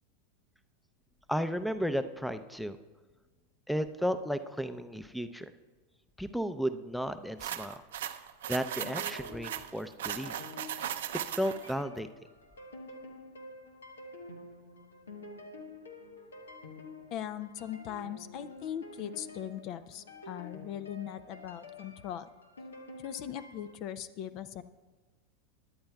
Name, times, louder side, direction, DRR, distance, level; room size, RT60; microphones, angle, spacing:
voice 1, 1.3-2.8 3.7-5.5 6.2-7.8 8.5-10.4 11.3-12.1, equal, ahead, 11 dB, 0.5 m, -33 dB
sound 1, 7.4-11.7, right 11 dB, 75° right, 0.6 m, -37 dB
sound 2, 8.4-23.7, left 2 dB, 90° left, 1.1 m, -49 dB
voice 2, 17.1-22.3 23.0-24.6, left 10 dB, 50° left, 14 dB, 0.5 m, -40 dB
21.0 x 10.5 x 2.3 m, 1.3 s
hypercardioid pair, 95°, 0 cm